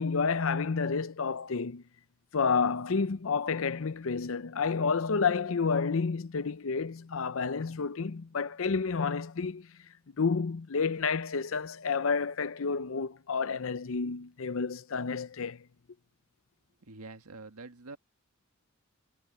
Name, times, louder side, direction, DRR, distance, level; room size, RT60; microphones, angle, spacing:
voice 1, 0.0-1.8 2.3-9.7 10.2-15.6, left 5 dB, 65° left, 0.6 m, -30 dB
voice 2, 16.9-18.0, right 3 dB, 85° right, 1.7 m, -46 dB
head